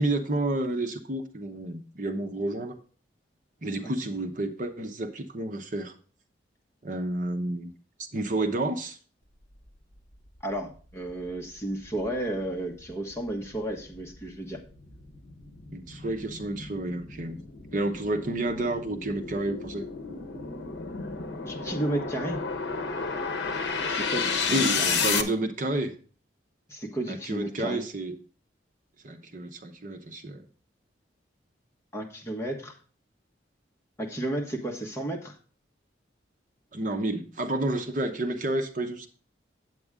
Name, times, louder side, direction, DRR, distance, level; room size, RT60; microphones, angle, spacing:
voice 1, 0.0-2.8 3.6-5.9 6.8-7.7 8.1-9.0 15.7-17.4 17.7-19.8 24.5-25.9 27.1-28.2 29.0-30.4 36.7-39.1, right 1 dB, 45° right, 6 dB, 0.9 m, -30 dB
voice 2, 10.4-14.6 21.4-22.4 23.9-24.9 26.7-27.8 31.9-32.8 34.0-35.4, right 1 dB, 15° left, 1 dB, 1.3 m, -33 dB
sound 1, 10.5-10.6 11.1-25.2, left 5 dB, 65° left, 1.0 m, -32 dB
9.4 x 8.1 x 3.6 m, 0.40 s
head